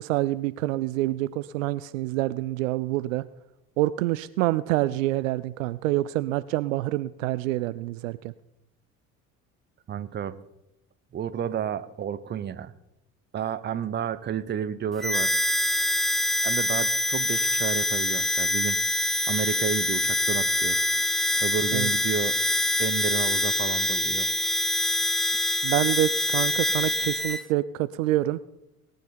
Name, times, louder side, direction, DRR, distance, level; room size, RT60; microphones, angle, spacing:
voice 1, 0.0-3.2 3.8-8.3 21.7-21.9 25.6-28.4, right 16 dB, 65° right, 16 dB, 0.5 m, -27 dB
voice 2, 9.9-10.4 11.1-12.7 13.3-15.3 16.4-18.8 19.3-20.8 21.4-22.4 22.8-24.3, right 8 dB, 25° right, 15 dB, 0.7 m, -31 dB
Harmonica, 15.0-27.4, left 1 dB, ahead, 0.4 m, -25 dB
18.5 x 9.4 x 4.3 m, 0.90 s
figure-of-eight pair, 55°, 44 cm